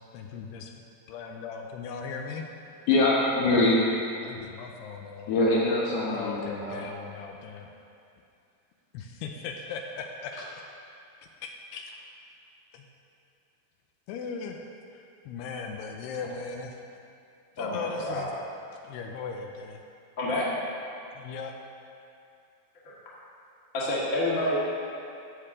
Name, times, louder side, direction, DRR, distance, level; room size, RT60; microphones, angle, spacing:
voice 1, 0.1-0.7 1.1-2.5 4.2-5.5 6.1-7.7 8.9-10.3 11.4-11.9 12.7-12.8 14.1-14.6 14.9-16.8 17.6-18.3 18.8-19.8 21.1-21.5, left 5 dB, 85° left, 2 dB, 2.6 m, -38 dB
voice 2, 2.9-3.8 5.3-6.8, left 2 dB, 70° left, -5 dB, 2.1 m, -23 dB
voice 3, 17.6-18.3 20.2-20.4 22.8-22.9 23.7-24.6, left 1 dB, 35° left, -7 dB, 1.3 m, -28 dB
14.5 x 6.7 x 3.7 m, 2.5 s
omnidirectional pair, 4.8 m